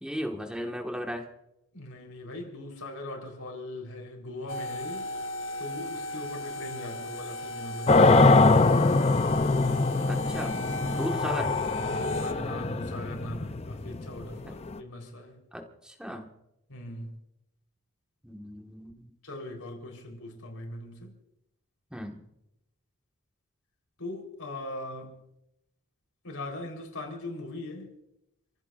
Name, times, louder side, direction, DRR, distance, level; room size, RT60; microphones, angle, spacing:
voice 1, 0.0-1.2 10.1-11.5 14.4-14.5 15.5-16.3 18.2-19.1 21.9-22.2, equal, 5° right, 1.6 m, -36 dB
voice 2, 1.7-5.1 5.6-9.3 11.8-15.4 16.7-17.1 19.2-21.1 24.0-25.2 26.2-27.9, left 1 dB, 90° left, 4.0 m, -40 dB
sound 1, 4.5-12.3, left 1 dB, 65° left, 1.1 m, -36 dB
sound 2, 7.9-14.8, left 3 dB, 30° left, 0.5 m, -23 dB
29.5 x 15.5 x 2.5 m
head